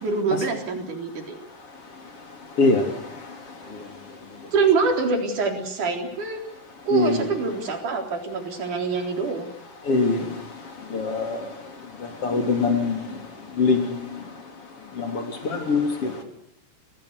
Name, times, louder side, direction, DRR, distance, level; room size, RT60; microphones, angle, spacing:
voice 1, 0.0-1.4 4.5-6.4 6.9-9.5, right 4 dB, 60° right, 4 dB, 5.1 m, -25 dB
voice 2, 2.6-2.9 3.7-3.8 6.9-7.3 9.9-10.4 10.9-11.5 12.0-13.1 13.6-14.2 15.0-16.2, left 3 dB, 40° left, 6 dB, 3.9 m, -23 dB
27.0 x 18.0 x 8.2 m, 0.77 s
omnidirectional pair, 4.0 m